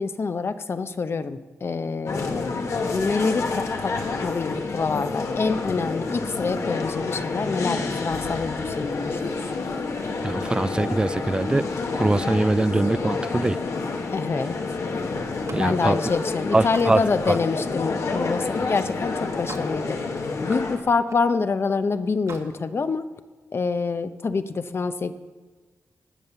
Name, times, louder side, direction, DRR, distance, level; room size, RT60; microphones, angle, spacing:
voice 1, 0.0-9.3 14.1-14.6 15.5-23.1 23.5-25.1, left 4 dB, 50° left, 11 dB, 0.8 m, -26 dB
sound 1, 2.1-20.8, left 3 dB, 70° left, 1.6 m, -29 dB
voice 2, 10.2-11.7 11.9-13.6 15.5-16.0 16.5-17.0 17.3-17.4, right 2 dB, 15° right, 18 dB, 0.3 m, -22 dB
Slam, 15.2-18.6 19.1-19.8 20.2-21.3 22.1-22.5, right 4 dB, 70° right, 1.6 m, -43 dB
18.5 x 7.3 x 6.8 m, 1.3 s
cardioid pair, 80°, 5 cm